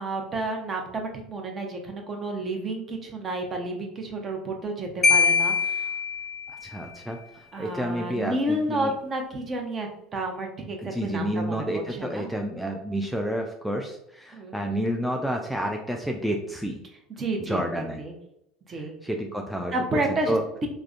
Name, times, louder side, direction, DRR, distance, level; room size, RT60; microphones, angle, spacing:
voice 1, 0.0-5.9 7.5-12.3 14.3-14.8 17.2-18.1 18.7-18.9 19.7-20.4, right 2 dB, 35° right, 3 dB, 0.7 m, -31 dB
Marimba xylophone, 5.0-6.8, left 5 dB, 20° left, 0.7 m, -23 dB
voice 2, 6.5-8.9 10.8-16.8 17.5-18.0 18.7-20.4, equal, ahead, 1 dB, 0.3 m, -30 dB
3.4 x 2.1 x 2.4 m, 0.80 s
hypercardioid pair, 75°, 0 cm